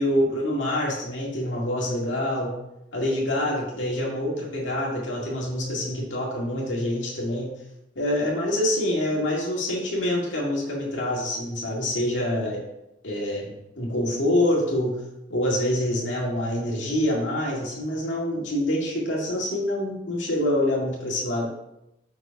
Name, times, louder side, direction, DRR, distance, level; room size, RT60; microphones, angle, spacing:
voice 1, 0.0-2.5 2.9-7.5 8.0-12.6 13.0-15.0 15.3-21.5, left 1 dB, 85° left, -3 dB, 2.0 m, -26 dB
6.2 x 4.9 x 5.2 m, 0.85 s
head